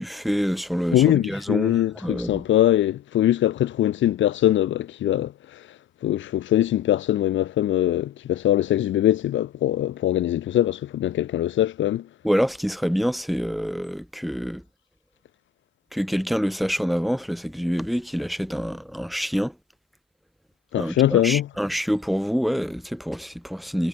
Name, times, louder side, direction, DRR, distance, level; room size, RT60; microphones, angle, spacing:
voice 1, 0.0-2.4 12.2-14.6 15.9-19.6 20.8-23.9, equal, ahead, 5.6 m, -26 dB
voice 2, 0.9-5.7 6.0-12.1 20.7-21.5, left 12 dB, 75° left, 1.4 m, -22 dB
cardioid pair, 90°, 20 cm